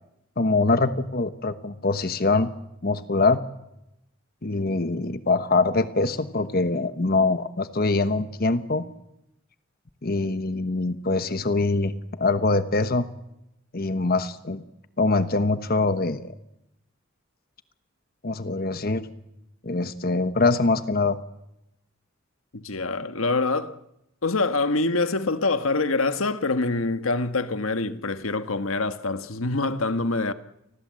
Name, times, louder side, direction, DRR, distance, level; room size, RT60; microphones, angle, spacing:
voice 1, 0.4-2.5 2.8-3.4 4.4-8.8 10.0-11.9 12.2-13.1 13.7-14.6 15.0-16.3 18.2-19.1 19.6-21.2, left 3 dB, 45° left, 1.2 m, -23 dB
voice 2, 22.5-23.8 24.2-30.3, left 3 dB, 85° left, 1.5 m, -25 dB
29.0 x 20.0 x 7.7 m
head